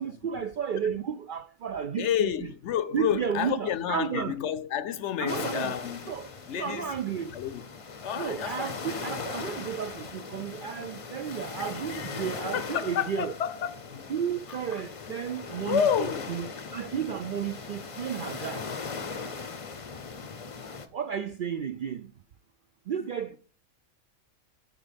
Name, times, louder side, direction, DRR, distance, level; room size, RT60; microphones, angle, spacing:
voice 1, 0.0-2.3 2.9-4.4 5.2-5.8 6.1-7.3 8.2-13.3 14.1-18.7 20.9-22.1 22.9-23.4, right 8 dB, 65° right, 0.5 m, -33 dB
voice 2, 2.0-6.1 6.5-6.9 7.3-7.6 8.0-8.7 11.6-14.1 14.5-14.8 15.7-16.3, left 9 dB, 70° left, 0.9 m, -30 dB
sound 1, 5.3-20.9, left 4 dB, 35° left, 0.6 m, -39 dB
9.5 x 5.2 x 5.1 m
omnidirectional pair, 1.3 m